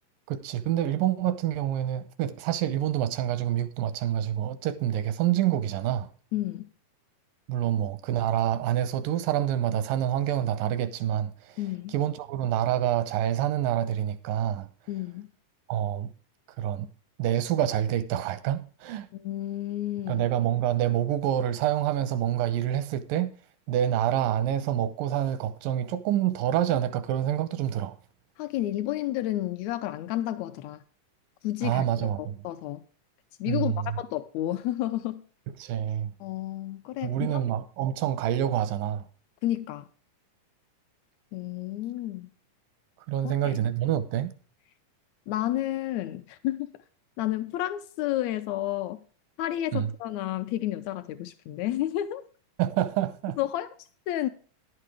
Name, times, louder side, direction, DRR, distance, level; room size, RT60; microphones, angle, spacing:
voice 1, 0.3-6.1 7.5-11.6 11.9-14.7 15.7-16.1 16.6-16.9 17.2-19.1 20.1-23.3 23.7-28.0 31.6-32.4 33.5-34.0 35.6-36.1 37.0-39.1 43.1-44.3 49.7-49.9 52.6-53.4, right 11 dB, 90° right, 2.5 m, -27 dB
voice 2, 6.3-6.7 11.6-11.9 14.9-15.3 19.1-20.2 28.4-30.8 31.4-32.8 33.4-35.2 36.2-37.4 39.4-39.8 41.3-42.3 43.2-43.6 45.3-46.8 47.2-49.0 49.4-52.2 53.4-53.7 54.1-54.3, left 14 dB, 85° left, 1.6 m, -31 dB
11.0 x 6.6 x 4.8 m
omnidirectional pair, 3.8 m